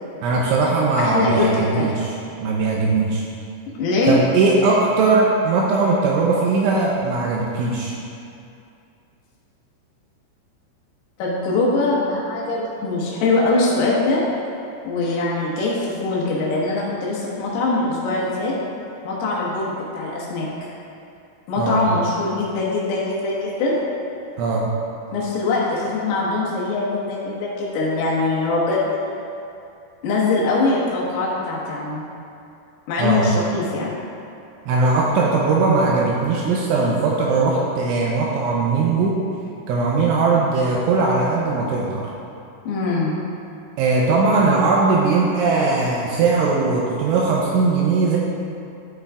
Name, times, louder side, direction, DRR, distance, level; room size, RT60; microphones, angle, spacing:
voice 1, 0.2-3.2 4.1-7.9 21.6-21.9 24.4-24.7 33.0-33.3 34.7-39.2 39.7-42.1 43.8-48.2, right 3 dB, 80° right, -3 dB, 2.8 m, -19 dB
voice 2, 1.0-2.1 3.8-4.2 11.2-14.3 14.9-18.6 19.0-20.5 21.5-23.8 25.1-28.8 30.0-32.0 32.9-34.0 42.7-43.2, left 3 dB, 80° left, -6 dB, 4.0 m, -22 dB
13.0 x 6.4 x 2.4 m, 2.6 s
omnidirectional pair, 6.0 m